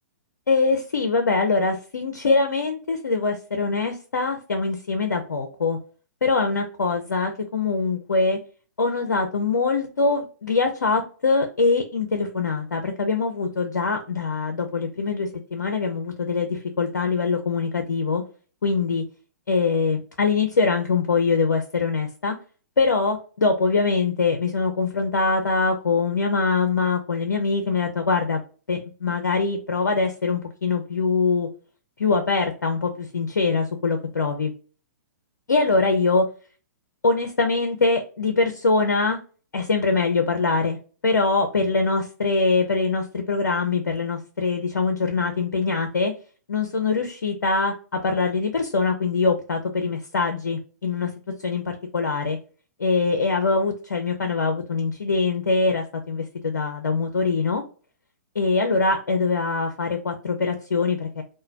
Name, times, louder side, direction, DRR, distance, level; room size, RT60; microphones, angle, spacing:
voice 1, 0.5-5.8 6.2-8.4 8.8-18.2 18.6-19.0 19.5-22.3 22.8-28.4 28.7-31.5 32.0-34.5 35.5-36.2 37.0-39.2 39.5-40.8 41.0-46.1 46.5-51.1 51.4-52.4 52.8-57.6 58.4-61.2, left 4 dB, 80° left, 5 dB, 0.5 m, -23 dB
3.0 x 2.2 x 2.4 m, 0.37 s
hypercardioid pair, 120°, 10 cm